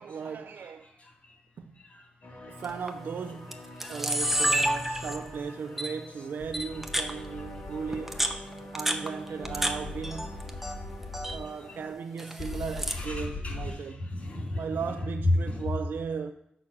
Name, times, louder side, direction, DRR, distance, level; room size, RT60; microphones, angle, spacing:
voice 1, 0.0-0.9 1.6-1.7 2.5-3.6 3.9-8.4 8.7-10.4 11.3-14.1 14.6-16.3, right 6 dB, 80° right, 0.4 m, -36 dB
voice 2, 0.6-1.4 1.8-2.1 2.3-2.5 3.7-4.1 4.4-4.6 4.9-5.0 5.7-5.8 6.9-7.4 7.7-7.8 8.2-8.3 9.5-9.8 10.6-10.7 11.2-11.3 11.7-11.8 12.5-12.6 12.9-15.0 15.4-15.7, left 1 dB, 45° left, 2.7 m, -40 dB
sound 1, 2.2-11.9, equal, 65° left, 2.5 m, -45 dB
Camera, 2.6-2.9 3.5-3.6 3.8-5.4 5.8-5.9 6.5-7.1 7.9-9.7 10.0-10.7 11.0-11.4 12.2-13.0, right 1 dB, 5° right, 0.6 m, -29 dB
sound 2, 4.2-5.4 6.4-8.4 9.4-11.4 12.4-13.7, left 2 dB, 30° left, 0.6 m, -41 dB
7.2 x 6.1 x 6.4 m
wide cardioid pair, 160°, 3 cm